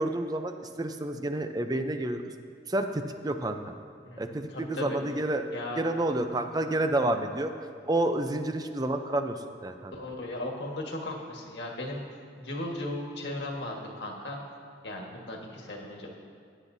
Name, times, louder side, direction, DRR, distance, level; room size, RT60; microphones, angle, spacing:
voice 1, 0.0-2.2 2.7-3.6 4.2-5.5 5.8-7.5 7.8-9.9, right 1 dB, 20° right, 7 dB, 0.5 m, -29 dB
voice 2, 4.0-5.0 5.5-5.8 9.9-12.0 12.4-14.4 14.8-16.2, left 1 dB, 70° left, 0 dB, 1.6 m, -37 dB
16.5 x 10.0 x 2.7 m, 2.2 s
head